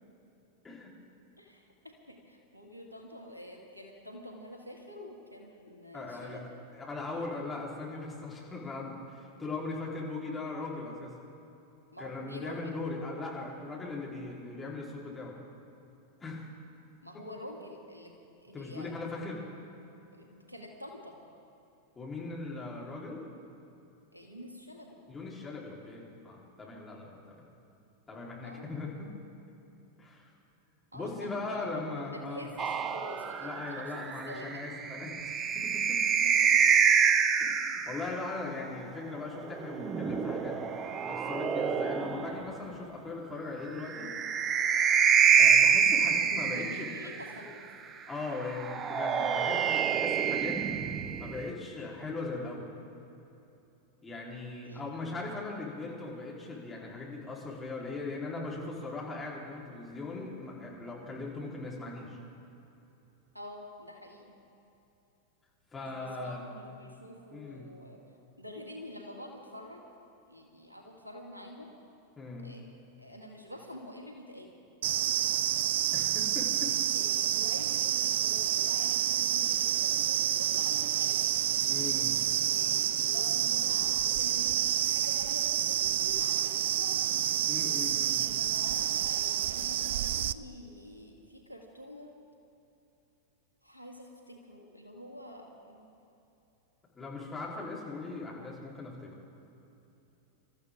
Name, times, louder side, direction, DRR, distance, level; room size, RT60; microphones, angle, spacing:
voice 1, 1.4-6.4 11.9-12.6 17.0-18.1 18.4-18.9 20.1-21.2 24.1-25.0 28.4-28.7 30.9-33.9 34.3-34.5 36.0-36.5 46.5-47.6 54.6-54.8 63.3-64.4 65.8-68.0 68.4-69.8 70.3-71.7 72.4-72.6 73.0-74.5 76.9-81.3 82.5-87.1 88.2-92.3 93.6-95.9, left 1 dB, 85° right, 1 dB, 2.0 m, -47 dB
voice 2, 5.9-6.4 6.7-11.1 12.0-15.4 16.2-16.5 18.5-19.4 22.0-23.2 25.1-27.4 28.1-29.1 30.0-30.3 30.9-32.5 33.4-35.2 35.5-36.0 37.4-40.6 41.1-44.1 45.0-45.1 45.4-46.9 48.1-50.6 51.2-52.7 54.0-62.2 65.7-66.4 67.3-67.7 72.2-72.5 75.9-76.8 81.7-82.2 87.5-88.2 97.0-99.1, left 3 dB, 15° left, -4 dB, 3.8 m, -39 dB
sound 1, 32.6-38.1 39.5-42.5 43.8-47.3 48.6-51.5, right 7 dB, 25° right, 0.8 m, -26 dB
sound 2, 74.8-90.3, right 11 dB, 60° right, 0.4 m, -28 dB
27.0 x 13.5 x 3.7 m, 2.9 s
figure-of-eight pair, 90°, 0 cm